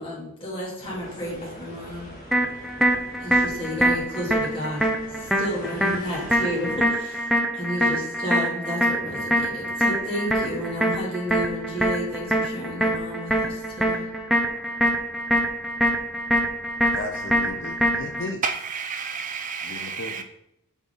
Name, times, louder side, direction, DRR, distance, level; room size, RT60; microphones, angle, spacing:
voice 1, 0.0-2.1 3.2-4.9 5.2-7.2 7.5-14.1, equal, 25° left, 2.5 m, -31 dB
sound 1, 0.8-6.8, equal, 40° left, 2.2 m, -43 dB
sound 2, 2.3-18.3, equal, ahead, 0.7 m, -24 dB
voice 2, 16.8-18.4 19.6-20.2, left 3 dB, 60° left, 0.6 m, -35 dB
voice 3, 18.4-20.2, right 5 dB, 40° right, 0.5 m, -30 dB
8.0 x 4.3 x 3.8 m
head